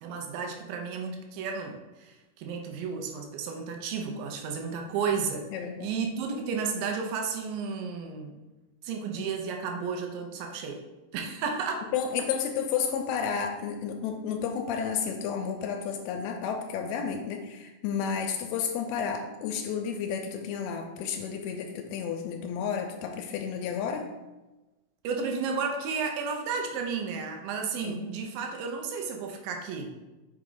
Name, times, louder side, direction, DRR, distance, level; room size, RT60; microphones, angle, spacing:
voice 1, 0.0-5.5 5.8-8.4 8.8-10.8 11.1-11.9 25.0-30.0, right 5 dB, 75° right, 3 dB, 2.1 m, -32 dB
voice 2, 5.5-5.9 11.9-24.1 27.8-28.0, left 7 dB, 85° left, 3 dB, 2.5 m, -31 dB
6.1 x 4.4 x 3.8 m, 1.1 s
omnidirectional pair, 4.5 m